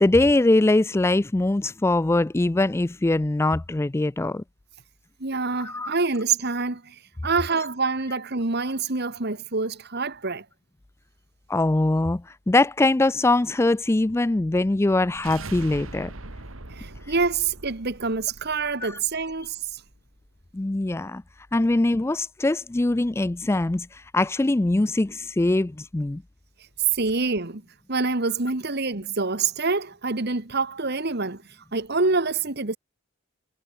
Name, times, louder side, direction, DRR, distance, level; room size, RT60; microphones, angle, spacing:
voice 1, 0.0-4.4 5.6-5.9 11.5-16.1 18.8-19.0 20.5-21.2 21.5-26.2, left 2 dB, 10° left, 0.3 m, -22 dB
voice 2, 5.2-6.9 7.2-10.4 16.7-19.8 26.9-27.6 27.9-31.4 31.7-32.8, right 4 dB, 50° right, 1.7 m, -26 dB
sound 1, 14.8-19.9, right 2 dB, 75° right, 2.8 m, -42 dB
head